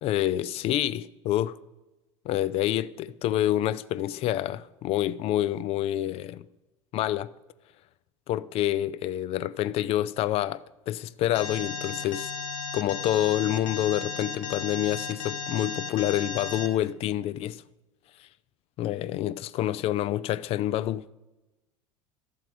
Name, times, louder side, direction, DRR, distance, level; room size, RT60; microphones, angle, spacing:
voice 1, 0.0-1.6 2.2-6.5 6.9-7.3 8.3-12.3 12.7-17.6 18.8-21.0, left 13 dB, 35° left, 0.4 m, -27 dB
Alarm, 11.3-16.7, left 5 dB, 75° left, 0.9 m, -35 dB
13.0 x 7.3 x 5.1 m
figure-of-eight pair, 70°, 17 cm